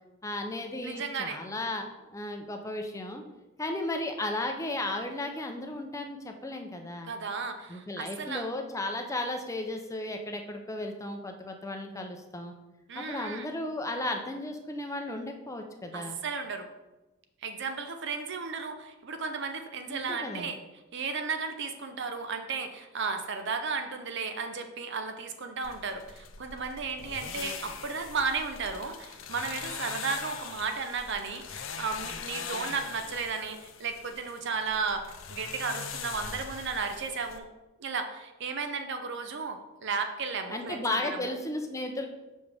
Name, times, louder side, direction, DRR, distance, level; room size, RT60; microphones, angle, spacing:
voice 1, 0.2-3.2 3.6-7.1 7.7-12.5 13.0-16.2 19.9-20.5 40.5-42.1, left 2 dB, 15° left, 4 dB, 0.6 m, -35 dB
voice 2, 0.8-1.4 7.0-8.5 12.9-13.5 15.9-16.7 17.4-20.6 20.9-37.5 37.8-41.3, right 4 dB, 65° right, 7 dB, 0.7 m, -34 dB
sound 1, 25.6-37.4, left 6 dB, 75° left, 0.6 m, -42 dB
6.9 x 5.2 x 3.5 m, 1.0 s
head